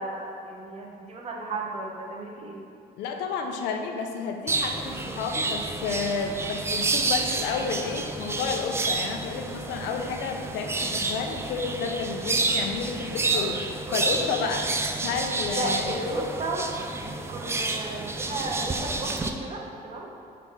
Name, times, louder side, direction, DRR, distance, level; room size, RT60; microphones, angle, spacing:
voice 1, 0.0-2.6 14.3-14.4 15.5-16.6 17.0-20.1, right 2 dB, 40° right, -1 dB, 1.0 m, -34 dB
voice 2, 3.0-13.6 13.9-14.7 15.0-16.2, left 5 dB, 85° left, 4 dB, 0.6 m, -31 dB
sound 1, 4.5-19.3, right 3 dB, 15° right, 0.4 m, -29 dB
4.6 x 4.0 x 5.6 m, 2.6 s
cardioid pair, 110°, 17 cm